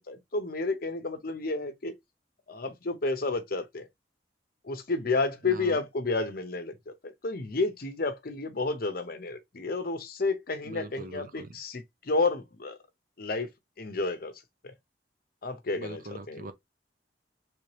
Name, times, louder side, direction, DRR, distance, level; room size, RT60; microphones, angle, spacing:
voice 1, 0.0-1.9 2.5-3.9 4.6-12.8 13.2-13.5 13.8-14.3 14.6-14.7 15.4-16.0 16.3-16.5, left 3 dB, 55° left, 0.7 m, -31 dB
voice 2, 5.4-5.8 10.6-11.6 15.8-16.5, right 2 dB, 50° right, 0.7 m, -42 dB
3.4 x 3.2 x 2.8 m
head